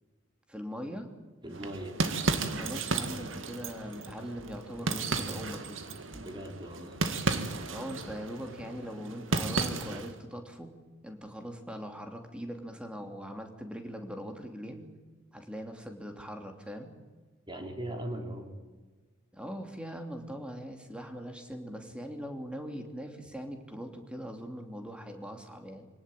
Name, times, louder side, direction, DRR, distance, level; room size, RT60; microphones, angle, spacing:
voice 1, 0.5-1.1 2.5-5.8 7.7-10.7 11.0-14.9 15.3-16.9 19.3-25.9, equal, 5° right, 4 dB, 2.8 m, -41 dB
voice 2, 1.4-2.0 6.1-7.0 17.5-18.5, right 1 dB, 25° right, 3 dB, 3.9 m, -39 dB
sound 1, 1.5-10.2, right 3 dB, 85° right, 2.0 m, -34 dB
25.0 x 18.0 x 9.1 m, 1.3 s
head